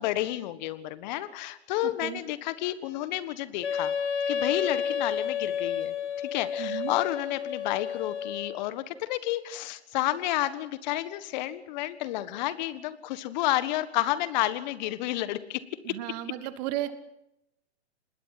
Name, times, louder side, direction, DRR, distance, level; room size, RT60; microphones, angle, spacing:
voice 1, 0.0-3.9 4.3-15.6 15.9-16.0, left 15 dB, 40° left, 14 dB, 1.5 m, -31 dB
Wind instrument woodwind instrument, 3.6-8.7, left 7 dB, 80° left, 1.8 m, -31 dB
voice 2, 6.6-6.9 15.8-16.9, right 14 dB, 40° right, 12 dB, 1.6 m, -33 dB
26.0 x 20.5 x 5.9 m, 0.84 s
hypercardioid pair, 125°, 33 cm